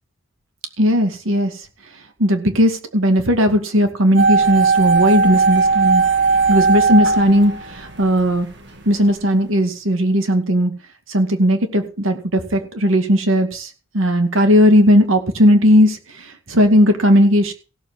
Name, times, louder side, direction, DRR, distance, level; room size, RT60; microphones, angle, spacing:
voice 1, 0.8-1.6 2.2-6.0 6.5-8.5 8.9-10.7 11.1-13.7 13.9-17.5, equal, 85° right, 6 dB, 2.2 m, -16 dB
sound 1, 4.2-8.3 8.5-8.6, right 4 dB, 60° right, 2.3 m, -17 dB
16.0 x 7.3 x 6.3 m, 0.36 s
head